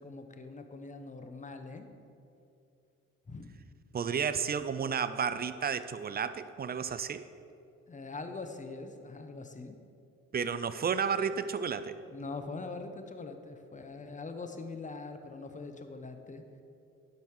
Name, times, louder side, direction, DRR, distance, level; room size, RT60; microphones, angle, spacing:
voice 1, 0.0-1.9 3.3-3.5 7.9-9.7 12.1-16.4, left 3 dB, 25° left, 7 dB, 1.0 m, -43 dB
voice 2, 3.9-7.3 10.3-12.0, right 6 dB, 30° right, 12 dB, 0.5 m, -32 dB
10.5 x 5.3 x 6.4 m, 2.6 s
cardioid pair, 90°, 30 cm